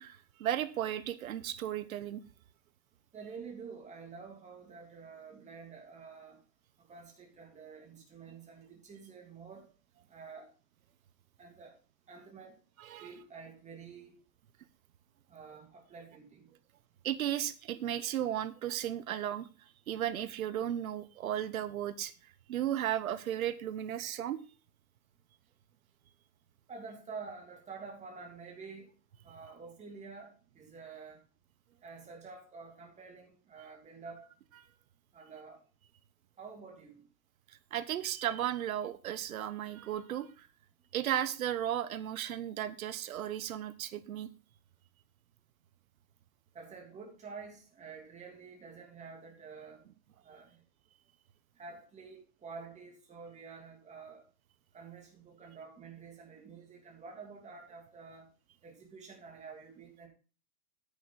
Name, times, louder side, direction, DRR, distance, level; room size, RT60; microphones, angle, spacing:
voice 1, 0.0-2.2 12.8-13.1 17.0-19.5 19.9-22.1 22.5-24.4 37.7-40.5 40.9-44.3, right 11 dB, 55° right, 1.1 m, -35 dB
voice 2, 3.1-6.4 6.8-9.7 10.1-10.5 11.4-11.8 12.1-12.6 13.0-14.1 15.3-16.5 26.7-28.9 29.2-31.2 31.8-34.3 35.1-35.6 36.4-37.0 46.5-49.8 50.2-50.6 51.6-54.2 54.7-58.3 58.6-60.1, right 5 dB, 15° right, 3.0 m, -49 dB
10.0 x 8.2 x 4.0 m
hypercardioid pair, 120°, 49 cm